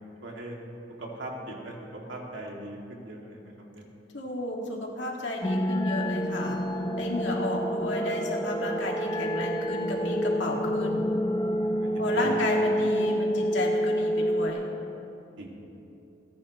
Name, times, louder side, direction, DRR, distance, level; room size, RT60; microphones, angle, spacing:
voice 1, 0.2-0.6 1.0-1.7 2.1-3.8 11.6-12.4 15.4-15.5, right 1 dB, 85° right, -2 dB, 2.4 m, -40 dB
voice 2, 4.1-6.6 7.0-11.0 12.0-14.7, left 2 dB, 75° left, -1 dB, 2.2 m, -32 dB
sound 1, 5.4-14.5, equal, 20° left, 0.6 m, -28 dB
28.0 x 10.5 x 3.1 m, 2.9 s
head